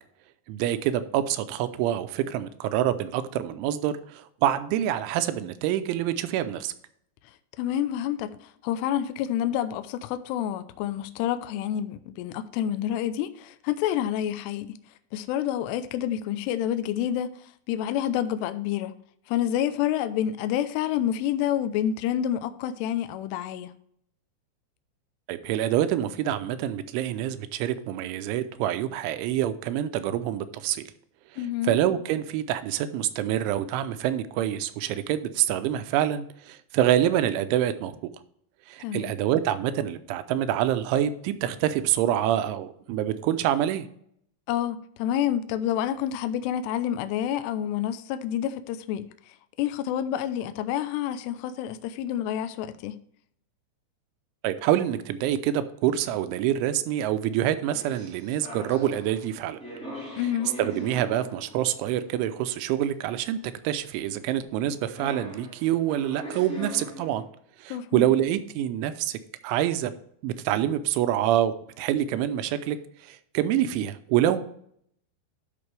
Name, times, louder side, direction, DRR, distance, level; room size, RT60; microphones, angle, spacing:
voice 1, 0.5-6.7 25.3-30.8 31.6-38.0 38.7-43.8 54.4-59.6 60.6-67.2 67.6-69.9 70.2-74.4, right 11 dB, 90° right, 3.1 m, -26 dB
voice 2, 7.6-14.8 15.1-17.3 17.7-18.9 19.3-23.7 31.4-31.7 38.8-39.1 44.5-49.1 49.6-53.0 60.1-60.5 67.7-68.1, left 11 dB, 85° left, 2.4 m, -28 dB
sound 1, 57.7-61.9 62.4-62.5 64.6-64.7 64.9-67.2, equal, ahead, 2.3 m, -41 dB
12.5 x 5.9 x 3.3 m
omnidirectional pair, 5.4 m